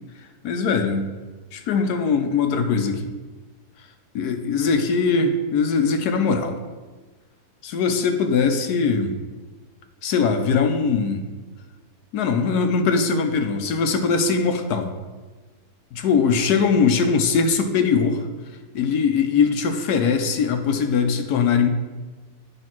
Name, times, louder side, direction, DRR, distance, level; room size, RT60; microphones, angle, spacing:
voice 1, 0.4-1.1 1.5-3.1 4.1-6.6 7.6-9.2 10.0-11.3 12.1-14.9 15.9-18.3 18.7-21.7, left 5 dB, 80° left, 6 dB, 1.3 m, -21 dB
9.1 x 3.4 x 5.9 m, 1.3 s
omnidirectional pair, 1.7 m